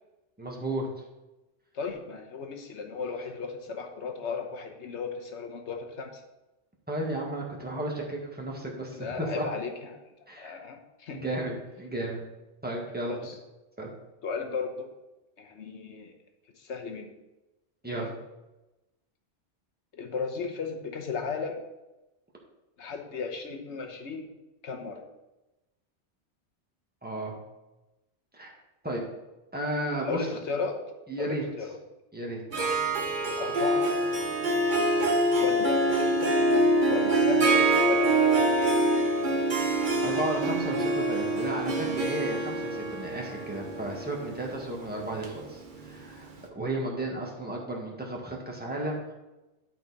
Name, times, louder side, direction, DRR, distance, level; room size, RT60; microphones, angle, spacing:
voice 1, 0.4-0.9 6.9-9.5 10.3-10.5 11.1-12.2 12.6-13.3 13.8-13.9 17.8-18.1 27.0-27.4 28.3-28.5 28.8-29.0 29.5-30.3 31.1-31.4 32.1-32.7 39.9-46.3 46.5-49.1, right 1 dB, 10° right, -2 dB, 1.5 m, -33 dB
voice 2, 1.7-6.2 9.0-10.0 10.4-11.2 13.1-13.4 14.2-14.9 15.4-16.1 16.6-17.1 18.0-18.1 19.9-21.6 22.8-24.3 24.6-25.0 30.0-30.8 31.2-31.8 33.4-33.9 35.4-36.4 36.9-38.4, left 5 dB, 75° left, 4 dB, 1.3 m, -35 dB
Harp, 32.5-46.1, right 2 dB, 45° right, 1.1 m, -25 dB
12.0 x 4.3 x 4.1 m, 1.0 s
omnidirectional pair, 1.2 m